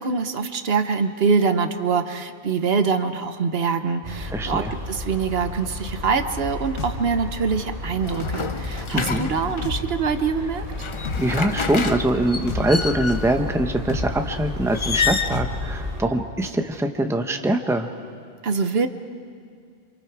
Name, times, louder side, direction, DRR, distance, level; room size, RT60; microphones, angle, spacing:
voice 1, 0.0-10.6 18.4-18.9, right 5 dB, 65° right, 9 dB, 1.1 m, -24 dB
sound 1, 4.0-16.0, left 2 dB, 35° right, 3.3 m, -33 dB
voice 2, 4.3-4.7 8.9-9.2 11.2-17.9, right 1 dB, 5° right, 6 dB, 0.9 m, -23 dB
sound 2, 6.8-7.0 8.2-8.4 9.6-9.8 11.0-11.2 12.5-12.7 13.9-14.1 15.3-15.5, left 4 dB, 85° left, 1.6 m, -29 dB
sound 3, 8.0-9.8 10.6-13.4 14.7-15.4, left 5 dB, 35° left, 0.5 m, -28 dB
29.0 x 26.0 x 4.7 m, 2.1 s
omnidirectional pair, 1.1 m